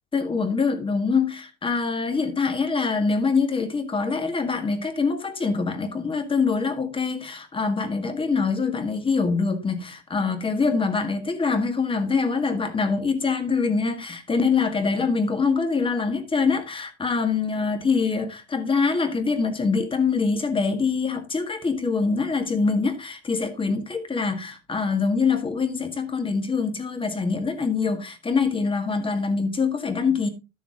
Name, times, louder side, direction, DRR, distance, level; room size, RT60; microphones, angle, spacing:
voice 1, 0.1-30.3, left 4 dB, 15° left, 1.7 m, -24 dB
12.5 x 7.2 x 3.7 m
cardioid pair, 145°, 34 cm